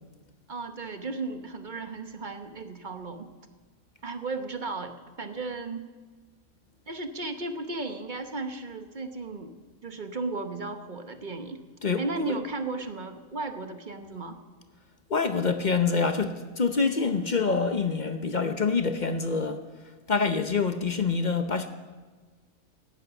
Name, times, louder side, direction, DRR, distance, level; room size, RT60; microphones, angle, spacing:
voice 1, 0.5-3.3 4.0-5.9 6.9-9.6 9.8-11.6 12.0-14.4, right 3 dB, 35° right, 1.2 m, -35 dB
voice 2, 11.8-12.3 15.1-19.6 20.1-21.7, left 4 dB, 40° left, 0.8 m, -26 dB
17.5 x 11.5 x 7.1 m
omnidirectional pair, 1.5 m